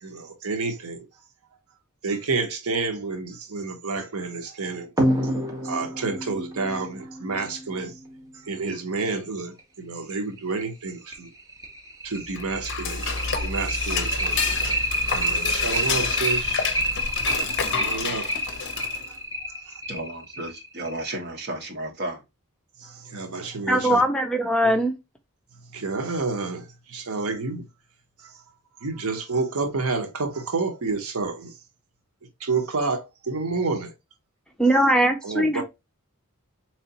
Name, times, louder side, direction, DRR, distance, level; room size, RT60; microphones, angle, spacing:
voice 1, 0.0-1.0 2.0-4.9 5.6-7.9 8.4-11.3 12.0-13.0 13.4-14.4 15.1-16.6 17.7-18.3 19.7-19.8 22.8-24.0 24.6-24.8 25.7-27.6 28.2-28.3 28.8-31.5 32.4-33.9 35.2-35.6, right 3 dB, 70° right, 0.8 m, -29 dB
sound 1, 5.0-8.1 9.6-9.7 10.1-10.2 10.6-10.7 11.1-21.2, equal, 15° right, 0.9 m, -28 dB
Dishes pots and pans / Cutlery silverware, 12.3-19.2, left 5 dB, 55° left, 0.6 m, -29 dB
voice 2, 19.9-22.2, right 1 dB, 45° right, 1.1 m, -33 dB
voice 3, 23.7-24.9 34.6-35.6, right 1 dB, 5° left, 0.4 m, -20 dB
3.8 x 3.2 x 2.8 m
head